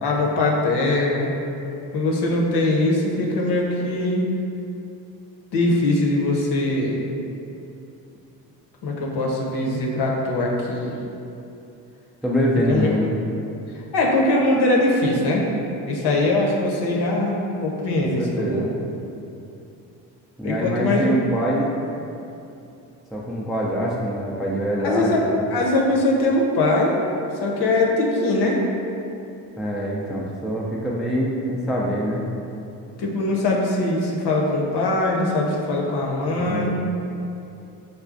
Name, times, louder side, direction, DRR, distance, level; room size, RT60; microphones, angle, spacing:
voice 1, 0.0-1.3 1.9-4.2 5.5-7.0 8.8-10.9 12.7-12.9 13.9-15.5 15.8-18.7 20.4-21.2 24.8-25.2 25.5-27.0 27.4-28.6 33.0-36.7, left 2 dB, 55° left, -2 dB, 0.8 m, -21 dB
voice 2, 12.2-13.1 18.0-18.7 20.4-21.7 23.1-25.5 29.6-32.3 36.2-36.7, equal, ahead, -4 dB, 0.3 m, -24 dB
4.9 x 2.2 x 2.5 m, 2.7 s
hypercardioid pair, 50°, 48 cm